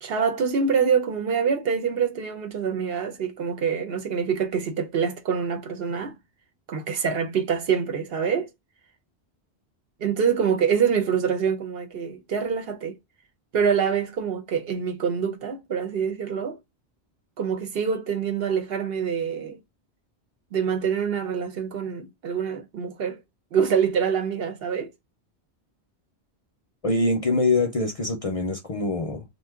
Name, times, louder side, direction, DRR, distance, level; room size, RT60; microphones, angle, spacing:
voice 1, 0.0-6.2 6.7-8.5 10.0-13.0 13.5-16.6 17.4-19.6 20.5-23.2 23.5-24.9, right 6 dB, 65° right, 0.9 m, -25 dB
voice 2, 26.8-29.2, left 2 dB, 45° left, 0.5 m, -24 dB
2.6 x 2.2 x 3.5 m
omnidirectional pair, 1.1 m